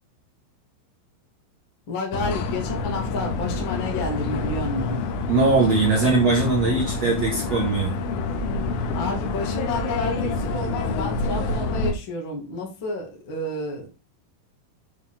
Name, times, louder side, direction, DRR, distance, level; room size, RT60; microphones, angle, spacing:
voice 1, 1.9-5.0 8.9-13.9, left 2 dB, 40° left, 1.8 m, -30 dB
sound 1, 2.1-11.9, left 3 dB, 75° left, 3.5 m, -27 dB
voice 2, 5.3-8.0, right 3 dB, 75° right, 1.5 m, -21 dB
8.2 x 4.7 x 4.2 m
omnidirectional pair, 5.9 m